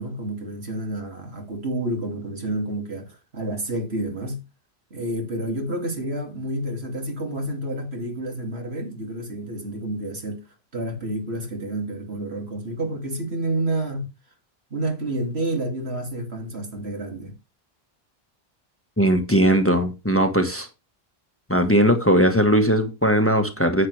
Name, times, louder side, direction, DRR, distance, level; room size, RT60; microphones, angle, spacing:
voice 1, 0.0-4.4 4.9-10.4 10.7-14.0 14.7-17.3, right 1 dB, 80° right, 3.0 m, -29 dB
voice 2, 19.0-20.7 21.5-23.9, equal, 15° left, 1.3 m, -19 dB
9.6 x 8.6 x 3.3 m
omnidirectional pair, 1.1 m